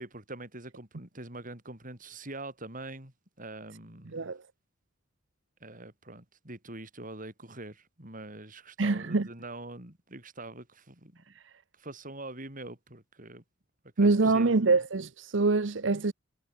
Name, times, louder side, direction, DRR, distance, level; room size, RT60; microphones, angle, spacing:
voice 1, 0.0-4.3 5.6-11.2 11.7-13.4 14.0-14.7, right 2 dB, 45° right, 7.5 m, -44 dB
voice 2, 4.1-4.4 8.8-9.3 11.3-11.5 14.0-16.1, right 3 dB, 70° right, 0.8 m, -25 dB
head